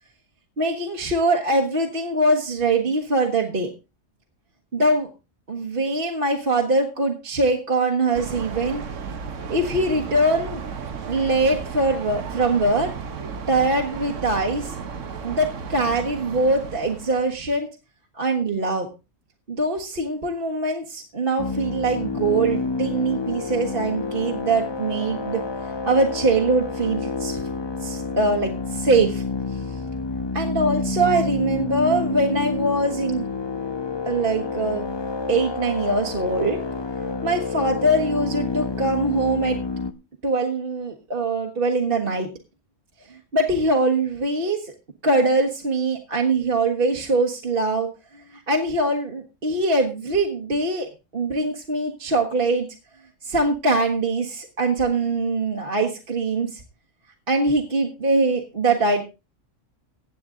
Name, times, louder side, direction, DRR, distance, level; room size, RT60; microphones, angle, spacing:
voice 1, 0.6-3.7 4.7-5.1 5.5-8.8 9.5-10.6 11.1-12.9 13.5-14.8 15.2-17.7 18.1-18.9 19.5-25.4 25.8-27.4 27.8-29.2 29.5-29.6 30.3-33.2 34.0-34.9 35.3-36.6 37.2-39.6 40.2-42.3 43.1-44.7 45.0-52.7 53.2-56.6 57.3-59.0, right 2 dB, 45° right, 1 dB, 1.5 m, -22 dB
sound 1, 8.1-17.3, right 6 dB, 75° right, 1.4 m, -34 dB
sound 2, 21.4-39.9, left 4 dB, 30° left, 0.5 m, -29 dB
16.0 x 8.6 x 3.7 m, 0.29 s
omnidirectional pair, 1.3 m